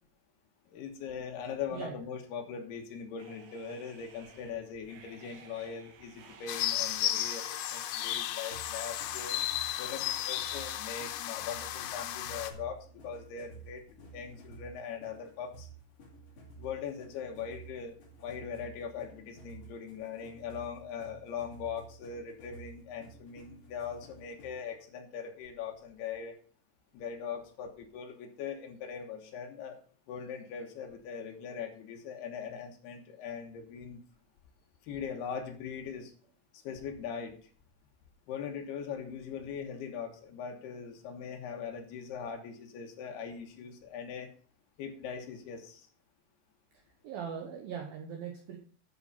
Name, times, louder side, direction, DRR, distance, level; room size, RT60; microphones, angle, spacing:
voice 1, 0.7-7.4 7.7-9.3 9.8-13.8 14.1-15.7 16.6-18.0 18.2-26.3 26.9-29.8 30.1-34.0 34.9-36.1 36.6-37.4 38.3-44.3 44.8-45.9, left 7 dB, 70° left, 4 dB, 2.8 m, -41 dB
sound 1, 3.2-10.7, right 6 dB, 65° right, 2.4 m, -56 dB
sound 2, 6.5-12.5, left 12 dB, 85° left, 3.3 m, -34 dB
sound 3, 8.5-24.7, right 5 dB, 40° left, 2.9 m, -52 dB
voice 2, 46.7-48.6, right 7 dB, 80° right, 3 dB, 2.1 m, -40 dB
11.0 x 6.4 x 5.5 m, 0.43 s
omnidirectional pair, 5.8 m